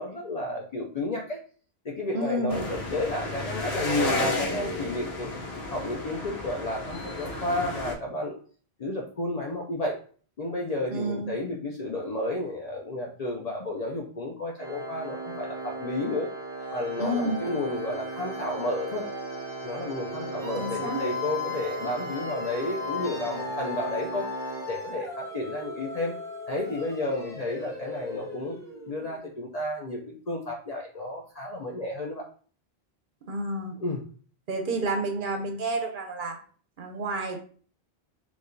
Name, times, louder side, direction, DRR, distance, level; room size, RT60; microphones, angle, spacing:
voice 1, 0.0-1.4 1.8-5.3 5.7-8.4 8.8-10.0 10.4-16.3 16.7-19.0 19.6-24.3 24.7-26.1 26.5-28.6 28.9-32.3 33.7-34.0, left 2 dB, 50° left, -1 dB, 0.5 m, -32 dB
voice 2, 2.1-2.7 10.9-11.3 17.0-17.4 20.5-21.0 33.2-33.8 34.5-36.4 36.8-37.4, right 2 dB, 60° right, 4 dB, 0.7 m, -30 dB
sound 1, 2.5-7.9, left 2 dB, 70° left, 0.9 m, -32 dB
Organ, 14.6-25.4, right 2 dB, 40° right, 0.3 m, -37 dB
sound 2, 16.6-29.4, left 4 dB, 5° left, 0.7 m, -38 dB
4.6 x 2.3 x 2.6 m, 0.42 s
omnidirectional pair, 1.1 m